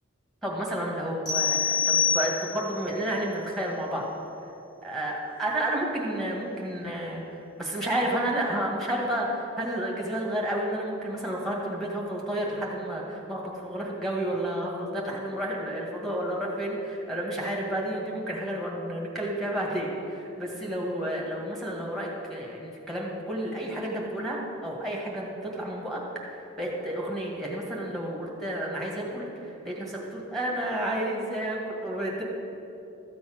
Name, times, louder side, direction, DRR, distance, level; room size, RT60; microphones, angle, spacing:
voice 1, 0.4-4.1 4.8-7.2 7.6-26.0 26.3-32.2, right 1 dB, ahead, -3 dB, 1.9 m, -31 dB
sound 1, 1.3-2.8, left 7 dB, 20° left, 3.3 m, -25 dB
13.5 x 7.3 x 6.2 m, 2.8 s
head